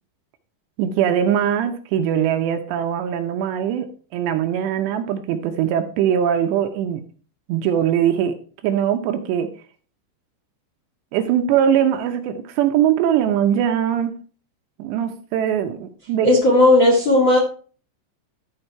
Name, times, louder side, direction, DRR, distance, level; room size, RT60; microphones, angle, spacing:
voice 1, 0.8-3.9 4.1-7.0 7.5-8.3 8.6-9.5 11.1-14.1 14.8-16.3, right 9 dB, 80° right, 7 dB, 2.7 m, -21 dB
voice 2, 16.2-17.4, left 1 dB, 75° left, 0 dB, 1.1 m, -14 dB
13.0 x 4.9 x 4.4 m, 0.41 s
omnidirectional pair, 5.4 m